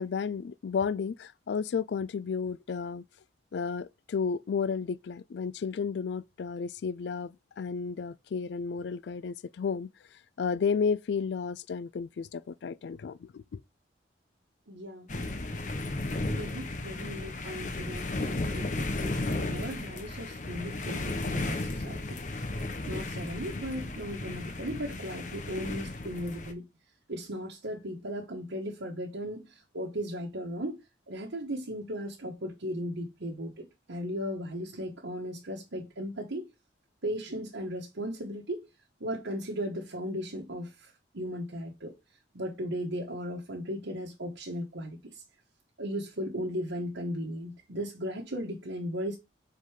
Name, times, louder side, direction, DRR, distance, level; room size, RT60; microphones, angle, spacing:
voice 1, 0.0-3.0 3.5-9.9 10.4-13.6, left 5 dB, 70° left, 0.3 m, -32 dB
voice 2, 14.7-15.1 16.3-22.2 22.8-26.6 27.1-30.8 31.1-36.5 37.0-38.6 39.0-41.9 42.3-45.2 45.8-49.2, equal, 90° right, 1.2 m, -36 dB
sound 1, 15.1-26.5, left 2 dB, 40° left, 0.9 m, -34 dB
5.2 x 4.1 x 4.8 m
head